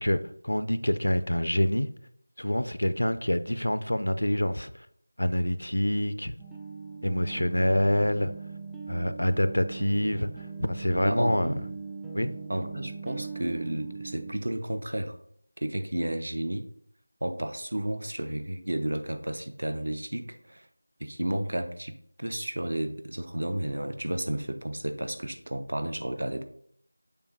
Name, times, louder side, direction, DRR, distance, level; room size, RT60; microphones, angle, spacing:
voice 1, 0.0-1.9 2.4-4.9 5.2-6.3 7.0-8.3 8.9-11.5 12.1-12.3, equal, 80° left, 12 dB, 0.5 m, -26 dB
sound 1, 6.4-14.3, right 4 dB, 5° right, 0.3 m, -40 dB
voice 2, 11.0-11.6 12.5-15.2 15.6-16.7 17.2-20.7 21.0-26.4, right 1 dB, 65° right, 8 dB, 0.7 m, -32 dB
6.8 x 2.6 x 5.3 m, 0.65 s
figure-of-eight pair, 170°, 0 cm